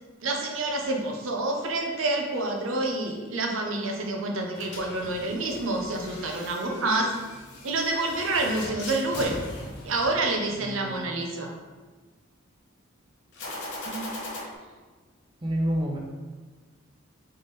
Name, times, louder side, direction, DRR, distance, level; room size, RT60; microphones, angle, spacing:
voice 1, 0.2-7.1 7.6-9.4 9.8-11.5, right 2 dB, 75° right, 2 dB, 0.6 m, -28 dB
sound 1, 4.5-10.7 13.3-14.4, left 1 dB, 55° left, 0.9 m, -40 dB
voice 2, 10.6-11.1 13.8-14.1 15.4-16.0, right 1 dB, 20° right, -1 dB, 0.4 m, -29 dB
3.5 x 3.3 x 4.0 m, 1.3 s
head